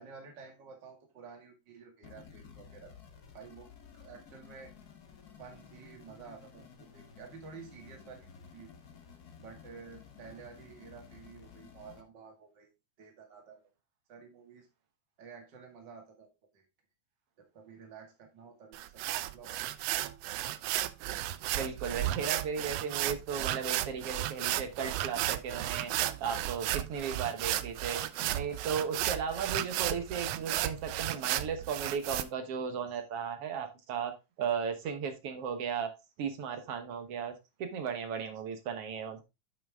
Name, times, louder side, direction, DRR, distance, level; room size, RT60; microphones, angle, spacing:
voice 1, 0.0-2.9 3.3-3.7 3.9-4.7 5.4-8.7 9.4-12.7 13.0-13.7 14.1-14.7 15.2-16.6 17.4-19.5, right 5 dB, 40° right, 3 dB, 2.3 m, -51 dB
sound 1, 2.0-12.0, left 7 dB, 60° left, 1.0 m, -54 dB
sound 2, 18.7-32.2, right 14 dB, 85° right, 1.4 m, -34 dB
voice 2, 21.5-25.9 26.2-34.1 34.4-35.9 36.2-37.3 37.6-39.2, right 6 dB, 60° right, 7 dB, 1.8 m, -35 dB
9.0 x 5.8 x 3.5 m, 0.25 s
omnidirectional pair, 3.5 m